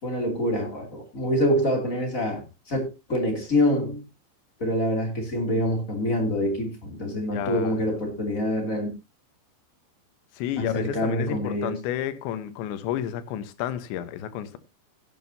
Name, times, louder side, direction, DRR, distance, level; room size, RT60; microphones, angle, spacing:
voice 1, 0.0-4.0 4.6-8.9 10.6-11.7, equal, 25° left, 2.2 m, -26 dB
voice 2, 7.3-7.8 10.3-14.6, left 11 dB, 80° left, 3.3 m, -31 dB
17.0 x 9.1 x 2.7 m
omnidirectional pair, 5.2 m